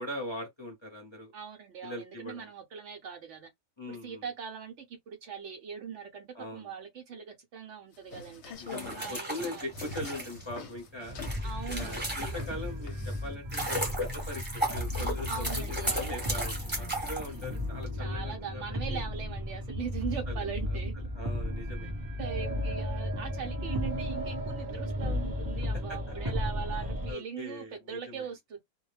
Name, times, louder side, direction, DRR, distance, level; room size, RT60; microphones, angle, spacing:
voice 1, 0.0-1.3 1.8-2.5 3.8-4.2 6.3-6.7 8.6-11.2 11.7-15.3 15.6-18.6 18.9-19.0 20.3-20.4 21.1-21.9 25.9-26.1 27.1-28.2, left 1 dB, 25° left, 0.7 m, -41 dB
voice 2, 1.3-3.5 3.9-8.5 9.0-9.7 11.4-12.0 15.3-16.3 18.0-20.9 22.2-28.6, right 7 dB, 65° right, 0.8 m, -41 dB
sound 1, 7.9-13.4, left 4 dB, 60° left, 0.8 m, -45 dB
sound 2, 8.6-12.7 13.2-17.9, right 1 dB, 10° right, 0.8 m, -35 dB
sound 3, 11.1-27.1, left 1 dB, 30° right, 0.4 m, -35 dB
2.3 x 2.1 x 3.1 m
omnidirectional pair, 1.4 m